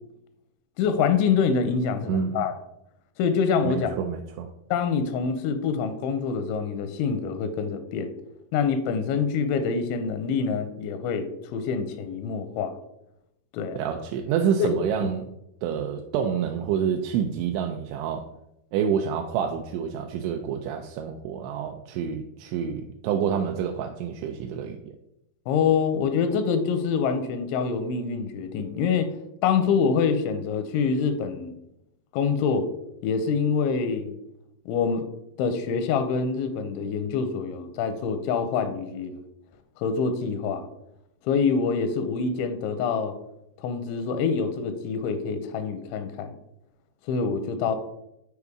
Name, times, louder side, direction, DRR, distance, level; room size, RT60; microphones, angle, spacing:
voice 1, 0.8-2.5 3.2-3.9 4.7-8.1 8.5-12.7 13.5-13.8 14.6-14.7 15.0-15.1 25.5-29.1 29.4-31.6 32.1-32.7 33.0-34.1 34.7-35.1 35.4-39.2 39.8-40.6 41.2-43.1 43.6-46.3 47.1-47.8, left 6 dB, 85° left, 9 dB, 2.9 m, -25 dB
voice 2, 2.1-2.5 3.6-4.5 13.7-15.3 15.6-18.3 18.7-24.9, right 7 dB, 85° right, 4 dB, 2.8 m, -28 dB
8.1 x 4.8 x 3.5 m, 0.83 s
omnidirectional pair, 5.4 m